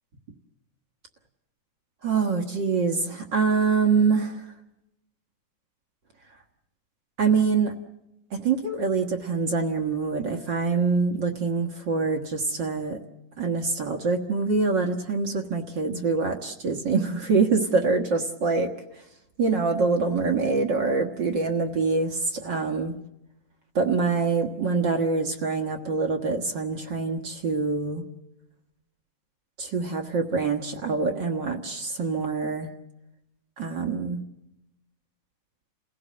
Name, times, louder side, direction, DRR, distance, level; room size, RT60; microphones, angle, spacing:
voice 1, 2.0-4.5 7.2-7.7 8.3-13.0 13.4-18.7 18.9-19.0 19.4-22.9 23.7-28.0 29.6-32.7 33.6-34.2, right 4 dB, 50° right, 5 dB, 1.5 m, -25 dB
29.0 x 16.5 x 7.7 m, 0.91 s
omnidirectional pair, 3.6 m